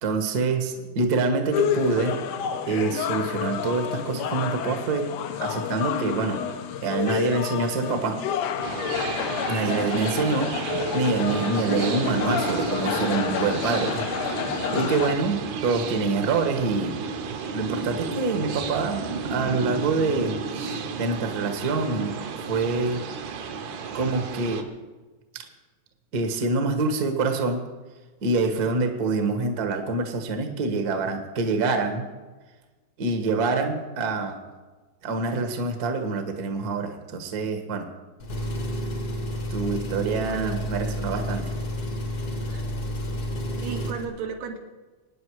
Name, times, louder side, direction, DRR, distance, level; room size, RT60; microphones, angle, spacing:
voice 1, 0.0-2.2 2.7-5.1 5.4-6.4 6.8-8.2 9.5-10.5 10.9-14.0 14.5-17.0 17.5-22.2 22.5-23.0 23.9-24.7 26.1-27.6 28.2-32.1 33.0-34.4 35.0-37.8 39.5-41.5, right 3 dB, 45° right, 5 dB, 1.2 m, -26 dB
sound 1, 1.5-15.2, left 9 dB, 75° left, 2.2 m, -29 dB
sound 2, 8.6-24.6, right 5 dB, 65° right, 2.2 m, -32 dB
Engine, 38.2-44.0, equal, 45° left, 1.2 m, -30 dB
voice 2, 40.1-40.6 42.5-42.6 43.6-44.6, right 6 dB, 85° right, 2 dB, 3.4 m, -35 dB
24.0 x 9.9 x 4.8 m, 1.3 s
omnidirectional pair, 4.0 m